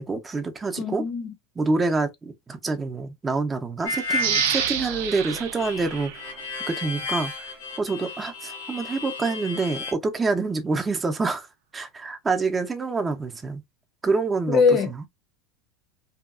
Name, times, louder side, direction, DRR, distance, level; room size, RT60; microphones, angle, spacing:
voice 1, 0.0-1.0 1.6-6.1 6.7-11.5 11.7-13.6 14.0-15.1, right 3 dB, 20° right, 0.5 m, -27 dB
voice 2, 0.8-1.3 14.5-15.1, left 5 dB, 50° left, 0.6 m, -22 dB
Harmonica, 3.9-9.9, left 2 dB, 85° left, 0.9 m, -33 dB
sound 1, 4.2-6.9 7.3-7.4, right 9 dB, 80° right, 0.4 m, -29 dB
2.7 x 2.3 x 2.4 m
supercardioid pair, 115°, 0 cm